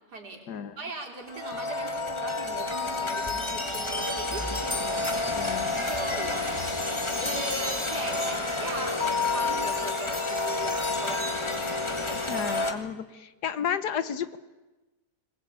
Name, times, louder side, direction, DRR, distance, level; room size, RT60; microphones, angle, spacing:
voice 1, 0.1-0.4 0.8-4.8 5.6-6.5 7.2-11.7, right 2 dB, 65° right, 2 dB, 4.0 m, -39 dB
sound 1, 1.2-12.7, left 3 dB, 15° left, 1.7 m, -29 dB
voice 2, 5.3-5.9 12.2-14.4, left 8 dB, 70° left, 13 dB, 1.5 m, -32 dB
22.0 x 20.0 x 8.7 m, 1.1 s
omnidirectional pair, 1.9 m